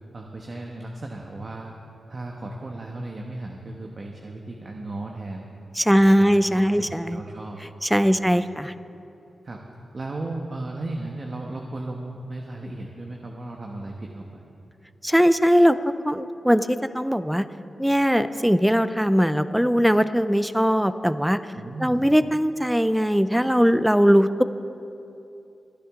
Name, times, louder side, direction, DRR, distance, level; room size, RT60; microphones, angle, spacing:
voice 1, 0.1-1.7 2.1-5.4 5.9-7.6 8.1-8.3 9.4-9.6 9.9-14.4 21.5-22.1, right 2 dB, 45° right, 0 dB, 1.2 m, -35 dB
voice 2, 5.8-7.2 7.8-8.7 15.0-17.4 17.8-21.4 21.8-24.4, equal, 5° right, 12 dB, 0.5 m, -20 dB
24.5 x 10.0 x 3.7 m, 2.7 s
cardioid pair, 70°, 0 cm